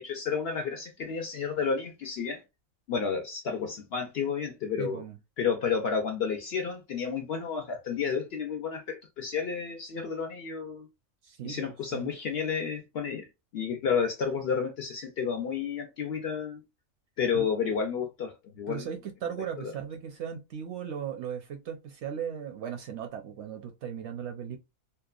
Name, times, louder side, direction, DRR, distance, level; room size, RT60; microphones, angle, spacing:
voice 1, 0.0-2.4 2.9-5.0 5.4-10.9 11.4-13.3 13.5-16.6 17.2-18.9 19.6-19.7, left 6 dB, 65° left, 0.6 m, -31 dB
voice 2, 4.8-5.2 11.2-12.1 17.3-17.5 18.7-24.6, right 8 dB, 65° right, 0.8 m, -37 dB
2.8 x 2.1 x 2.3 m
omnidirectional pair, 1.4 m